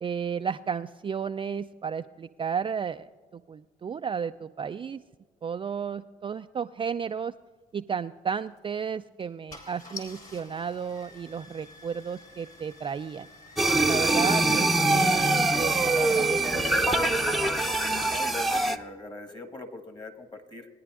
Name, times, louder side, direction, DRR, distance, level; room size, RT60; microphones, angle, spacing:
voice 1, 0.0-5.0 5.4-7.3 7.7-13.3 13.9-17.0, right 6 dB, 25° right, 9 dB, 0.3 m, -33 dB
Car / Engine starting, 8.4-8.6 9.2-9.3 9.5-14.5, left 3 dB, 50° left, 3.9 m, -48 dB
sound 1, 13.6-18.8, right 2 dB, ahead, 0.7 m, -24 dB
voice 2, 18.0-20.7, left 2 dB, 25° left, 6 dB, 1.6 m, -41 dB
19.5 x 10.0 x 2.5 m, 1.4 s
hypercardioid pair, 55°, 19 cm